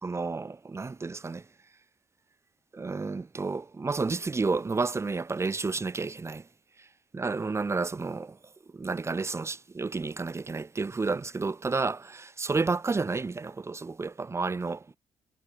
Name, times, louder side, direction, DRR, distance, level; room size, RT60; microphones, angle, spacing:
voice 1, 0.0-1.4 2.7-6.5 7.1-8.4 8.7-14.8, right 4 dB, 20° right, 6.4 m, -31 dB
cardioid pair, 145°, 13 cm